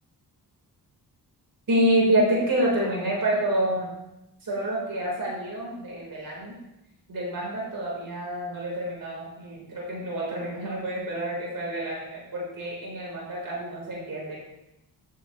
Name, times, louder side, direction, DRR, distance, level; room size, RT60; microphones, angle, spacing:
voice 1, 1.7-3.9 4.4-6.6 7.1-14.4, right 1 dB, 55° right, -4 dB, 4.2 m, -27 dB
15.0 x 8.2 x 3.2 m, 0.90 s
wide cardioid pair, 110°, 41 cm